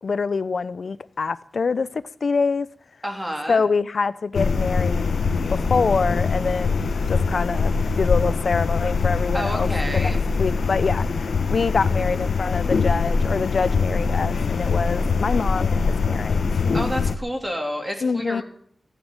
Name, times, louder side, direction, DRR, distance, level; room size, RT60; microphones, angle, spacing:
voice 1, 0.0-2.7 3.5-5.2 5.5-10.1 10.4-16.4 18.0-18.4, left 4 dB, 65° left, 0.7 m, -25 dB
voice 2, 3.0-3.6 9.3-10.2 16.7-18.4, equal, 10° right, 3.1 m, -29 dB
sound 1, 4.4-17.2, left 4 dB, 90° left, 0.9 m, -23 dB
16.0 x 9.2 x 9.1 m
wide cardioid pair, 125°, 0 cm